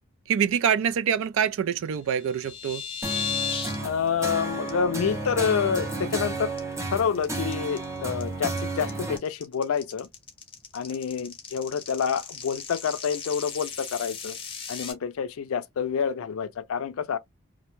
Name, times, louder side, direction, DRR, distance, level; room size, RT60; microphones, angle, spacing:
voice 1, 0.3-2.8, right 8 dB, 70° right, 0.3 m, -25 dB
sound 1, 2.1-3.7 4.1-4.3 4.7-4.8 5.1-5.4 5.7-6.2 6.6-14.9, left 7 dB, 25° left, 0.7 m, -36 dB
sound 2, 3.0-9.2, right 2 dB, 15° right, 0.5 m, -32 dB
voice 2, 3.8-6.5 6.9-10.1 10.7-14.4 14.7-17.2, left 6 dB, 80° left, 0.4 m, -28 dB
2.5 x 2.1 x 2.9 m
head